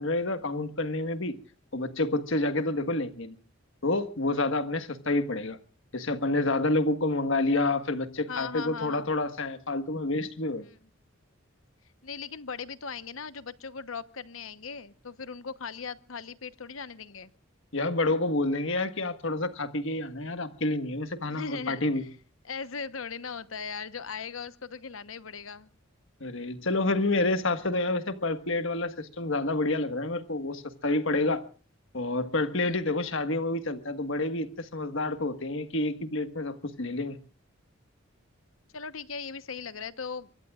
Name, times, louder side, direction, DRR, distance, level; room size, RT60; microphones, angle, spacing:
voice 1, 0.0-1.4 1.7-3.4 3.8-5.6 5.9-10.7 17.7-22.0 26.2-31.4 31.9-37.2, left 2 dB, 65° left, 1.6 m, -28 dB
voice 2, 8.3-9.1 10.7-10.8 12.0-17.3 21.3-22.1 22.4-25.7 32.6-32.7 38.7-40.3, left 5 dB, 80° left, 1.1 m, -38 dB
25.0 x 23.5 x 2.4 m
head